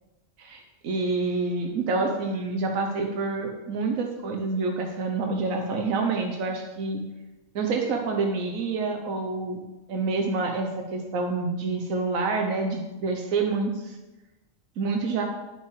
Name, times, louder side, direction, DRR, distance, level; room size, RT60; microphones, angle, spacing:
voice 1, 0.4-7.0 7.5-9.6 9.9-14.0 14.8-15.2, right 3 dB, 90° right, 2 dB, 1.3 m, -27 dB
10.5 x 5.7 x 4.7 m, 1.1 s
omnidirectional pair, 1.4 m